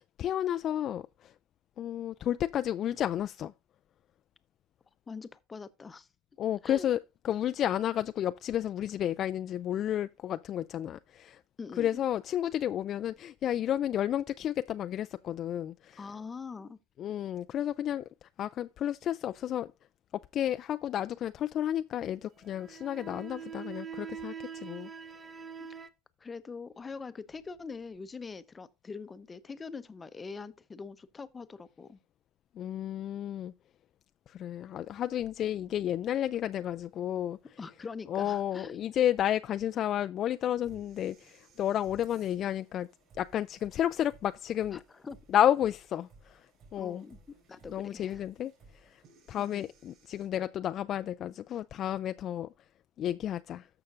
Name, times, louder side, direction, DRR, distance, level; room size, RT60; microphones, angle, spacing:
voice 1, 0.2-1.3 1.8-3.5 6.4-7.0 7.2-11.4 11.8-16.0 17.0-18.1 18.4-19.7 20.1-24.9 32.6-33.5 34.3-37.4 38.1-42.9 43.2-44.8 45.3-46.4 46.7-47.0 47.7-48.5 48.8-49.0 49.3-52.5 53.0-53.7, left 11 dB, 40° left, 0.3 m, -31 dB
voice 2, 5.1-6.1 6.6-6.9 11.6-12.0 16.0-16.8 25.7-25.8 26.2-32.0 37.6-38.8 44.7-45.2 46.7-47.2 47.5-48.2 49.4-49.6, left 4 dB, 20° left, 0.7 m, -43 dB
sound 1, 22.4-25.9, right 7 dB, 15° right, 0.7 m, -43 dB
sound 2, 35.2-50.3, right 3 dB, 45° right, 5.3 m, -61 dB
13.5 x 5.7 x 2.5 m
supercardioid pair, 115°, 0 cm